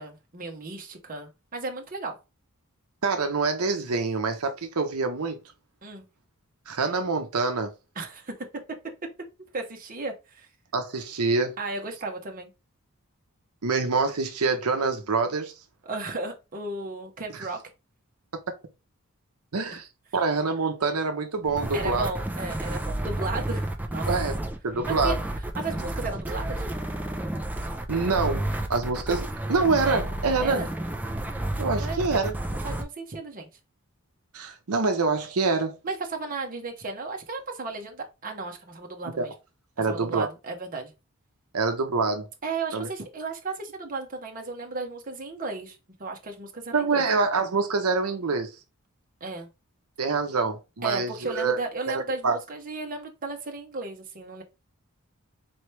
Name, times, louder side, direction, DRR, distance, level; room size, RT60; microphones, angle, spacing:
voice 1, 0.0-2.2 5.8-6.0 7.9-8.4 9.5-10.5 11.6-12.5 15.8-17.6 19.7-19.8 21.7-24.1 24.8-25.1 25.5-26.6 30.4-30.7 31.7-32.1 32.6-33.5 35.8-39.3 39.8-40.9 42.4-47.0 49.2-49.5 50.8-54.4, right 3 dB, 40° right, 1.0 m, -35 dB
voice 2, 3.0-5.4 6.7-7.7 10.7-11.5 13.6-15.5 17.3-17.4 19.5-19.9 20.1-22.1 24.1-24.4 24.6-25.1 27.9-30.7 31.6-32.3 34.3-35.8 39.2-39.3 39.8-40.3 41.5-42.3 42.7-42.9 46.7-48.5 50.0-51.6 52.2-52.4, right 4 dB, 80° right, 0.8 m, -26 dB
sound 1, 21.4-32.8, right 1 dB, 10° right, 0.5 m, -31 dB
4.3 x 3.1 x 3.1 m
head